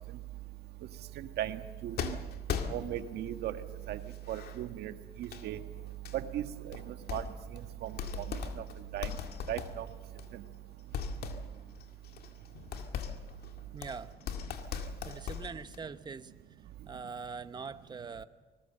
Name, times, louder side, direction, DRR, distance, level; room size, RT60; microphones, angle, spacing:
voice 1, 1.2-2.2 2.7-3.5 3.9-4.0 4.3-4.9 5.2-5.6 6.1-6.8 7.1-7.2 7.8-7.9 8.9-9.1 9.5-9.9, right 12 dB, 75° right, 8 dB, 1.6 m, -36 dB
sound 1, 2.0-3.2 3.9-4.6 5.2-5.4 6.1-6.2 6.7-7.6 7.9-10.5 10.9-15.9, left 7 dB, 65° left, 2.1 m, -39 dB
voice 2, 13.7-14.1 15.0-16.6 16.8-18.2, right 5 dB, 25° right, 11 dB, 1.0 m, -43 dB
25.5 x 20.0 x 7.6 m, 1.2 s
cardioid pair, 110°, 17 cm